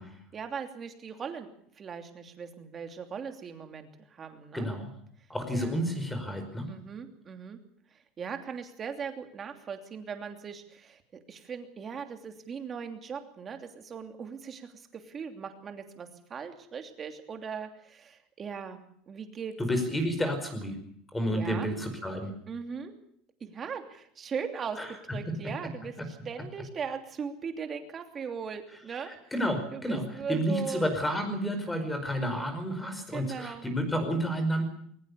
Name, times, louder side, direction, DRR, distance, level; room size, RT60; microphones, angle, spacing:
voice 1, 0.3-1.5 1.7-4.7 5.5-5.7 6.7-7.6 7.9-19.5 21.3-21.7 22.5-22.9 23.4-29.1 29.7-30.8 33.1-33.7, right 6 dB, 25° right, 6 dB, 2.9 m, -39 dB
voice 2, 4.5-4.9 5.3-6.7 19.6-20.8 21.1-22.3 24.8-25.2 26.0-26.1 29.0-34.6, equal, 5° left, 8 dB, 5.0 m, -30 dB
21.5 x 20.0 x 7.0 m, 0.66 s
cardioid pair, 155°, 0 cm